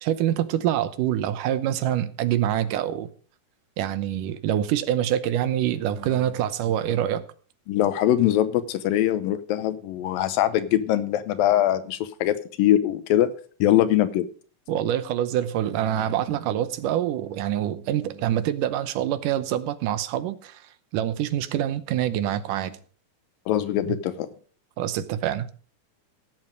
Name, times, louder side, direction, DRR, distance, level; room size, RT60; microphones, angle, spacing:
voice 1, 0.0-3.1 3.8-7.2 14.7-20.6 20.9-22.8 23.8-24.0 24.8-25.5, right 11 dB, 75° right, 2.4 m, -25 dB
voice 2, 7.7-13.3 13.6-14.3 23.5-24.3, left 12 dB, 85° left, 2.6 m, -22 dB
16.5 x 7.6 x 5.2 m
omnidirectional pair, 4.0 m